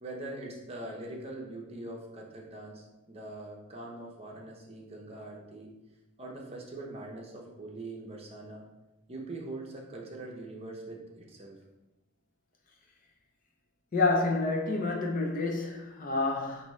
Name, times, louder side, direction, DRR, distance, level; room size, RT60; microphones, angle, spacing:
voice 1, 0.0-5.7 6.2-8.7 9.1-11.6, right 2 dB, 30° right, -1 dB, 0.7 m, -42 dB
voice 2, 13.9-16.7, left 3 dB, 40° left, 1 dB, 0.6 m, -28 dB
5.0 x 2.7 x 3.1 m, 1.0 s
head